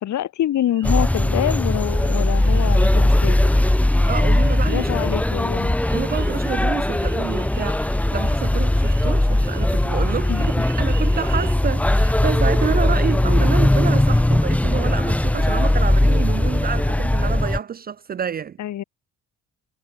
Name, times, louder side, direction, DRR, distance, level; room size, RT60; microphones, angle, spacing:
voice 1, 0.0-3.5 4.7-5.8 10.3-10.5 18.6-18.8, left 12 dB, 70° left, 2.0 m, -26 dB
sound 1, 0.5-11.6, right 12 dB, 75° right, 6.9 m, -47 dB
sound 2, 0.8-17.6, left 1 dB, 5° left, 0.6 m, -19 dB
voice 2, 4.1-4.9 5.9-18.6, right 7 dB, 30° right, 0.4 m, -28 dB
cardioid pair, 90°, 30 cm